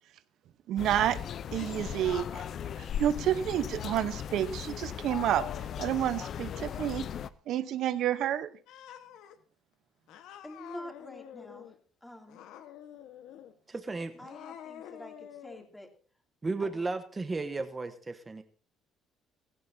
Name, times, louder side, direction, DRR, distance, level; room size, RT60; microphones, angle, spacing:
voice 1, 0.7-1.2 1.5-2.4 2.8-5.5 5.8-7.1 7.5-8.5, right 11 dB, 70° right, 14 dB, 0.9 m, -29 dB
sound 1, 0.8-7.3, left 9 dB, 50° left, 0.6 m, -37 dB
Cat, 8.7-9.3 10.1-11.8 12.3-13.5 14.1-15.7, left 10 dB, 80° left, 1.3 m, -48 dB
voice 2, 10.4-11.7 12.0-12.4 14.2-15.9 16.6-16.8, left 1 dB, 10° left, 3 dB, 2.7 m, -47 dB
voice 3, 13.7-14.1 16.4-18.4, right 3 dB, 20° right, 9 dB, 1.0 m, -34 dB
16.5 x 15.5 x 2.7 m, 0.41 s
cardioid pair, 120°, 0 cm